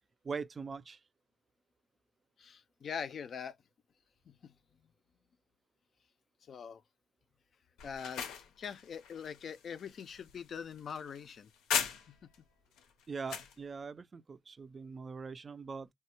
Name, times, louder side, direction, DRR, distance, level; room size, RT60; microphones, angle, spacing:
voice 1, 0.2-1.0 13.1-15.9, right 5 dB, 35° right, 0.3 m, -42 dB
voice 2, 2.4-3.6 4.3-4.5 4.8-4.9 6.5-6.8 7.8-8.3 8.6-11.5 12.1-12.3, left 7 dB, 55° left, 0.3 m, -43 dB
sound 1, 7.8-12.4 12.8-13.5, left 7 dB, 90° left, 0.6 m, -39 dB
3.3 x 2.1 x 2.8 m
cardioid pair, 90°, 0 cm